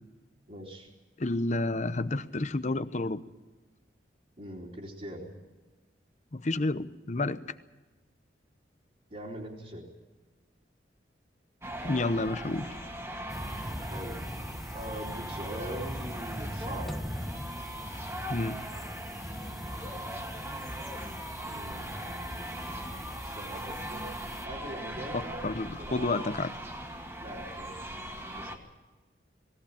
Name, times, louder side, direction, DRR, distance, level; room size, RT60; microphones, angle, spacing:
voice 1, 0.5-0.9 4.4-5.3 9.1-9.8 13.9-14.2 14.7-17.0 21.5-24.1 24.4-25.5 25.8-26.4 27.2-27.8 28.3-28.6, right 1 dB, 40° right, -4 dB, 3.1 m, -42 dB
voice 2, 1.2-3.2 6.3-7.4 11.8-12.7 18.3-18.6 25.1-26.5, left 2 dB, 40° left, 13 dB, 0.8 m, -30 dB
sound 1, 11.6-28.6, right 1 dB, 15° right, 2.0 m, -40 dB
sound 2, 13.3-24.4, equal, ahead, 1.3 m, -41 dB
20.0 x 17.0 x 8.8 m, 1.3 s
head